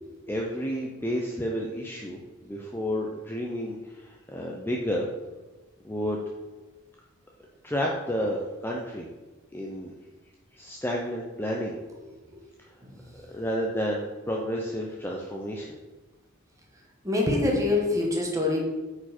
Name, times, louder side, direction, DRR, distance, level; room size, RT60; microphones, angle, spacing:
voice 1, 0.3-5.1 5.8-6.2 7.6-9.1 9.5-9.9 10.5-11.8 13.3-15.8, equal, 10° left, -1 dB, 0.6 m, -31 dB
voice 2, 12.8-13.2 17.0-18.6, left 2 dB, 15° right, -1 dB, 1.4 m, -26 dB
8.8 x 4.7 x 4.3 m, 1.2 s
head